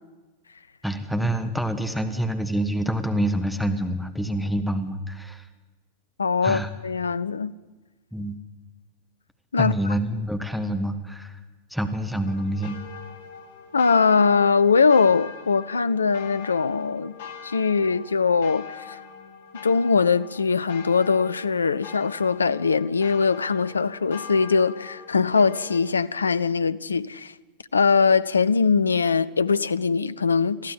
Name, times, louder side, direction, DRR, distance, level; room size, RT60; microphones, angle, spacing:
voice 1, 0.8-5.5 6.4-6.7 8.1-8.4 9.6-11.4 11.7-12.8, right 1 dB, ahead, 1.4 m, -27 dB
voice 2, 6.2-7.5 9.5-9.7 13.7-17.1 17.4-19.0 19.6-27.3 27.7-30.7, left 5 dB, 75° left, 0.5 m, -21 dB
sound 1, 12.3-25.8, left 6 dB, 55° left, 1.6 m, -42 dB
22.0 x 14.5 x 8.4 m
figure-of-eight pair, 90°, 0 cm